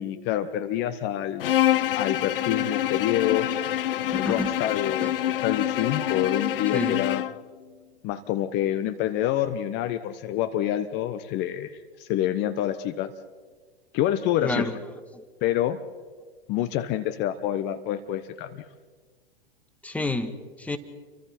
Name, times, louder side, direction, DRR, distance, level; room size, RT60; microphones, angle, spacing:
voice 1, 0.0-1.4 1.9-3.5 4.1-7.2 8.0-11.7 12.0-13.1 13.9-14.7 15.4-15.8 16.5-18.6, left 12 dB, 35° left, 10 dB, 1.1 m, -27 dB
Bowed string instrument, 1.4-7.4, left 12 dB, 65° left, 0.6 m, -26 dB
voice 2, 4.1-4.6 5.0-5.1 6.7-7.0 14.4-14.8 15.1-15.2 19.8-20.8, left 2 dB, 5° left, 8 dB, 1.5 m, -29 dB
29.5 x 24.0 x 4.4 m, 1.5 s
figure-of-eight pair, 105°, 30 cm